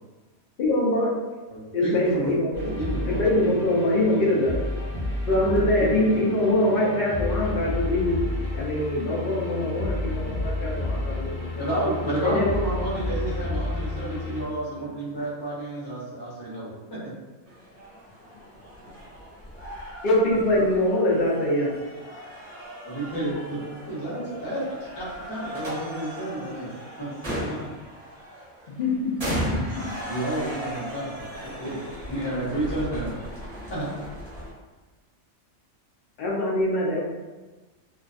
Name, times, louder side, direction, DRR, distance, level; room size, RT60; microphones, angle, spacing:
voice 1, 0.6-1.1 1.7-2.5 3.0-4.6 5.3-8.2 8.5-11.2 12.2-12.5 20.0-21.7 28.8-29.8 36.2-37.0, left 1 dB, 70° left, -4 dB, 0.5 m, -23 dB
voice 2, 1.5-2.4 2.6-3.3 5.8-6.2 11.6-17.1 20.3-20.4 22.8-23.6 23.9-24.6 25.0-26.7 27.0-27.1 27.4-27.7 30.1-31.8 32.1-33.1 33.7-33.9, right 1 dB, 25° left, -7 dB, 0.6 m, -30 dB
sound 1, 2.5-14.4, left 1 dB, 10° left, 1.0 m, -31 dB
voice 3, 10.2-11.6 15.1-15.2 18.1-19.1, left 2 dB, 85° left, -2 dB, 1.1 m, -51 dB
sound 2, 17.5-34.5, equal, 35° right, 0.6 m, -37 dB
2.4 x 2.3 x 2.4 m, 1.2 s
omnidirectional pair, 1.5 m